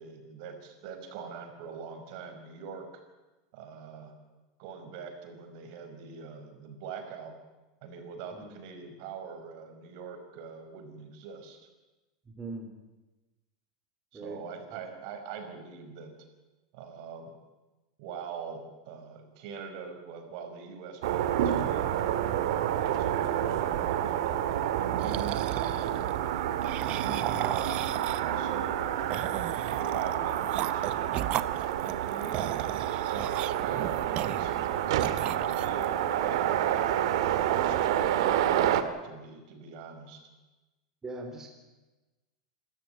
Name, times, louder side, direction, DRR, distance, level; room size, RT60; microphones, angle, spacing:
voice 1, 0.0-2.9 3.5-4.1 4.6-7.4 7.8-11.7 14.1-16.1 16.7-17.3 18.0-22.2 22.7-27.8 28.2-29.1 29.7-32.7 33.0-37.2 37.5-40.2, right 5 dB, 60° right, 6 dB, 5.3 m, -43 dB
voice 2, 12.2-12.7 14.1-14.4 14.7-14.8 33.6-33.8 41.0-41.5, right 2 dB, 15° right, 2 dB, 3.4 m, -41 dB
sound 1, 21.0-38.8, right 11 dB, 75° right, 1.8 m, -29 dB
sound 2, 25.0-26.1 26.6-28.4 29.1-34.7 35.0-35.9, right 14 dB, 40° right, 0.9 m, -36 dB
27.0 x 13.5 x 9.4 m, 1.1 s
supercardioid pair, 140°, 3 cm